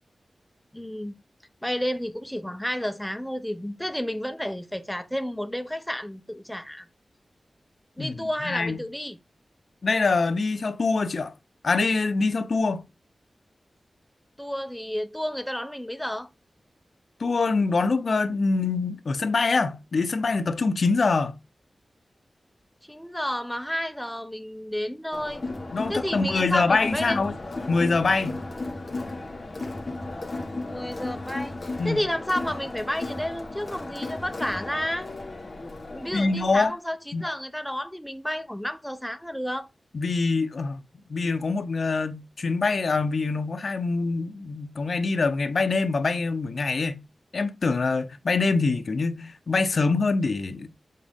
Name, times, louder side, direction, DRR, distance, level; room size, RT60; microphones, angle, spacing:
voice 1, 0.7-1.2 1.6-6.8 8.0-9.2 14.4-16.3 22.8-25.4 25.9-27.2 30.7-35.1 35.9-39.7, equal, 5° left, 0.8 m, -31 dB
voice 2, 8.4-8.8 9.8-11.3 11.6-12.8 17.2-21.3 25.7-27.3 27.7-28.4 31.8-32.1 36.1-36.7 37.1-37.2 39.9-40.8 41.1-47.0 47.3-50.8, left 3 dB, 60° left, 0.8 m, -24 dB
Crowd, 25.1-36.7, left 2 dB, 35° left, 1.9 m, -35 dB
7.6 x 3.7 x 3.6 m
wide cardioid pair, 110°, 0 cm